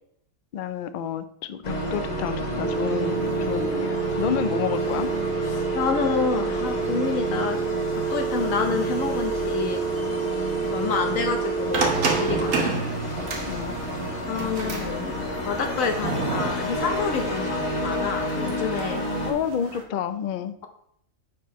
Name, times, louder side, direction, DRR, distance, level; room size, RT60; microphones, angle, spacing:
voice 1, 0.5-5.1 12.6-12.8 13.5-13.8 19.2-20.5, left 8 dB, 60° left, 11 dB, 0.5 m, -30 dB
sound 1, 1.6-19.3, left 1 dB, 35° left, 1.2 m, -30 dB
sound 2, 2.6-12.6, right 6 dB, 60° right, 0.4 m, -28 dB
voice 2, 5.5-7.6 7.9-9.8 10.6-13.3 14.3-19.0, left 5 dB, 85° left, 5 dB, 1.4 m, -28 dB
sound 3, 11.7-19.8, right 4 dB, 85° right, 1.5 m, -31 dB
10.5 x 4.6 x 3.1 m, 0.71 s
omnidirectional pair, 1.3 m